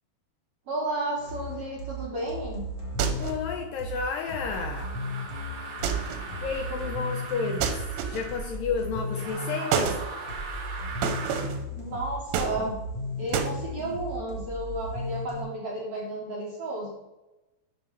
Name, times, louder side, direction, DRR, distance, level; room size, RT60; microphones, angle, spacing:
voice 1, 0.7-2.7 11.7-12.8 13.2-16.9, right 1 dB, 65° right, -4 dB, 1.5 m, -32 dB
sound 1, 1.2-15.4, equal, 35° left, 1.9 m, -36 dB
sound 2, 3.0-3.5 5.8-6.3 7.6-8.4 9.7-10.0 11.0-11.6 12.3-13.0 13.3-13.6, right 7 dB, 85° right, 2.8 m, -29 dB
voice 2, 3.2-5.0 6.4-10.0, left 5 dB, 80° left, 4 dB, 2.0 m, -31 dB
sound 3, 3.9-8.6 9.1-11.5, right 4 dB, 50° right, 3.4 m, -40 dB
12.5 x 4.8 x 3.2 m, 1.0 s
omnidirectional pair, 4.6 m